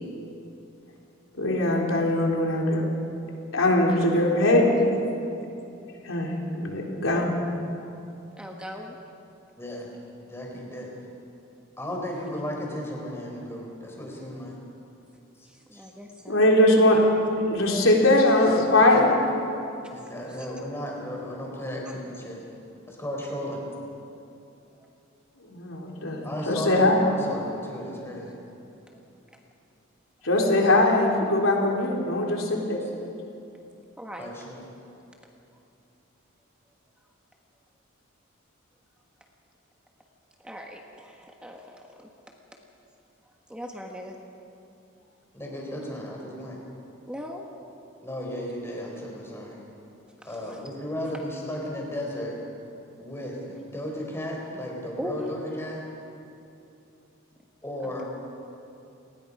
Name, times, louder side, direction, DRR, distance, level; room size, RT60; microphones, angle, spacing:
voice 1, 1.4-2.9 3.5-4.6 6.0-7.4 16.3-17.0 17.4-19.2 25.5-27.0 30.2-32.8, left 1 dB, 85° left, -1 dB, 3.8 m, -21 dB
voice 2, 3.9-4.3 4.6-4.8 8.4-9.0 15.7-16.4 20.3-20.5 21.9-22.0 34.0-34.3 40.4-42.1 43.5-44.1 47.1-47.5 50.5-50.6 55.0-55.2, equal, 5° right, 1 dB, 1.3 m, -40 dB
voice 3, 9.6-9.9 10.3-10.9 11.8-14.6 15.7-15.8 19.9-22.4 22.9-23.7 26.2-28.4 32.8-32.9 34.2-34.6 45.3-46.6 48.0-49.6 50.2-52.4 53.0-55.8 57.6-58.0, equal, 15° left, -1 dB, 4.3 m, -34 dB
30.0 x 19.5 x 5.4 m, 2.8 s
head